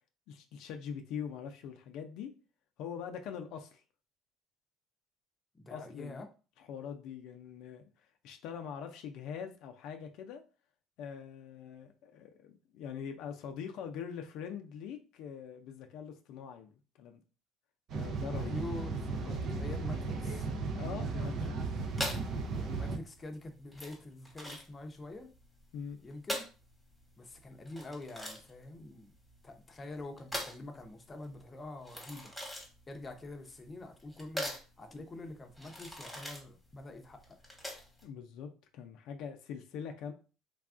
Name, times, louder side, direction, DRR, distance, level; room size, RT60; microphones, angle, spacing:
voice 1, 0.3-2.3 2.8-3.8 5.7-6.2 6.6-10.4 11.0-17.2 17.9-18.6 19.2-19.6 20.7-21.5 25.7-26.0 38.0-40.1, left 7 dB, 70° left, 5 dB, 0.4 m, -43 dB
voice 2, 5.5-6.3 18.4-20.5 21.7-22.0 22.5-25.3 26.0-26.4 27.2-29.1 29.4-32.3 32.9-37.4, left 2 dB, 25° left, 4 dB, 0.6 m, -46 dB
sound 1, 17.9-23.0, right 3 dB, 55° right, 0.5 m, -35 dB
sound 2, 21.9-38.0, equal, ahead, 1.1 m, -43 dB
3.3 x 2.3 x 2.4 m, 0.35 s
supercardioid pair, 100°, 0 cm